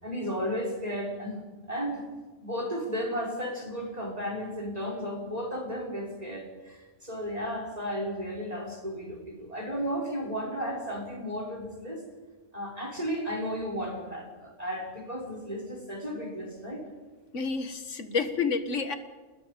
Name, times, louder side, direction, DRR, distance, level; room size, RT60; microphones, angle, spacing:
voice 1, 0.0-1.4 1.7-2.0 2.4-12.0 12.5-16.8, equal, 30° right, -1 dB, 5.9 m, -34 dB
voice 2, 17.3-18.9, left 5 dB, 70° left, 8 dB, 2.0 m, -29 dB
29.5 x 20.0 x 5.3 m, 1.3 s
omnidirectional pair, 1.3 m